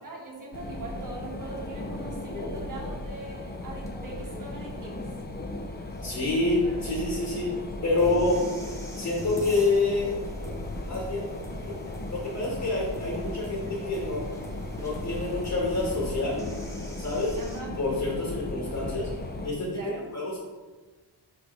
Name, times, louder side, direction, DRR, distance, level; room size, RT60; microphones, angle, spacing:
voice 1, 0.0-5.0 17.4-17.7 19.7-20.1, right 2 dB, 45° right, -2 dB, 1.8 m, -41 dB
sound 1, 0.5-19.5, left 2 dB, 25° left, 0.6 m, -37 dB
sound 2, 2.5-17.6, left 1 dB, 5° left, 1.1 m, -42 dB
voice 2, 6.0-7.6 7.8-8.4 8.9-10.1 10.8-11.3 11.6-11.8 12.1-14.3 14.7-16.4 17.0-17.4 17.8-19.1 19.4-19.8 20.1-20.4, left 2 dB, 40° left, -5 dB, 1.9 m, -27 dB
6.4 x 5.2 x 3.4 m, 1.3 s
wide cardioid pair, 105°, 43 cm